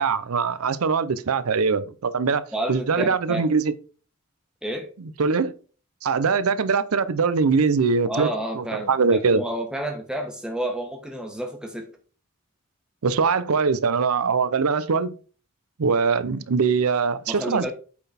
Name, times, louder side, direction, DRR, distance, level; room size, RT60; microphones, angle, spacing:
voice 1, 0.0-2.4 2.7-3.7 5.2-5.6 6.0-8.3 8.6-9.4 13.0-15.1 15.8-17.7, right 5 dB, 90° right, 0.6 m, -22 dB
voice 2, 2.5-3.5 4.6-4.9 8.1-11.9 17.3-17.7, right 1 dB, 5° right, 1.2 m, -30 dB
8.6 x 4.0 x 4.2 m
head